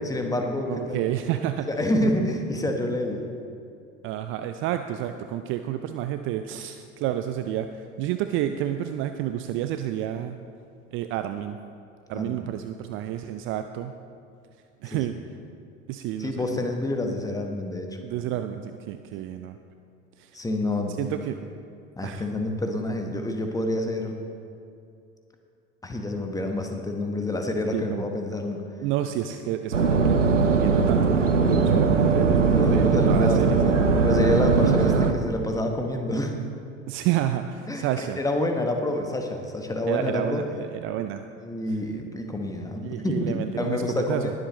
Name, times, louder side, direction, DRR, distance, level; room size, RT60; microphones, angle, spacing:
voice 1, 0.0-1.0 1.7-3.3 12.1-12.5 14.9-15.0 16.2-18.0 20.3-20.9 21.3-21.4 22.0-24.2 25.8-28.6 32.5-33.6 34.0-36.4 37.7-40.4 41.4-44.3, left 1 dB, 10° left, 4 dB, 1.2 m, -28 dB
voice 2, 0.7-1.7 2.0-2.1 4.0-10.4 10.9-11.6 12.1-13.9 14.8-15.1 15.9-16.5 18.0-19.6 20.2-20.3 21.0-21.4 22.0-22.3 27.7-28.0 28.8-33.6 34.6-34.8 36.9-38.2 39.9-41.2 42.8-44.3, right 12 dB, 35° right, 9 dB, 0.4 m, -30 dB
sound 1, 29.7-35.1, right 4 dB, 85° right, 0.7 m, -20 dB
20.5 x 7.7 x 3.1 m, 2.5 s
figure-of-eight pair, 70°, 36 cm